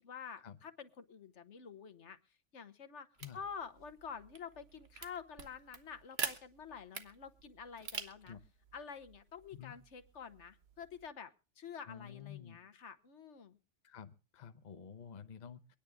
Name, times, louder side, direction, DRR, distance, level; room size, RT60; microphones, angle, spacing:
voice 1, 0.0-2.2 2.5-3.1 3.3-8.3 8.7-11.3 11.6-13.6, left 6 dB, 75° left, 9 dB, 1.3 m, -48 dB
sound 1, 3.1-11.1, right 5 dB, 60° right, 1.5 m, -47 dB
voice 2, 11.9-12.6 13.8-15.7, left 8 dB, 40° left, 9 dB, 0.9 m, -50 dB
24.0 x 10.0 x 3.4 m, 0.34 s
omnidirectional pair, 1.2 m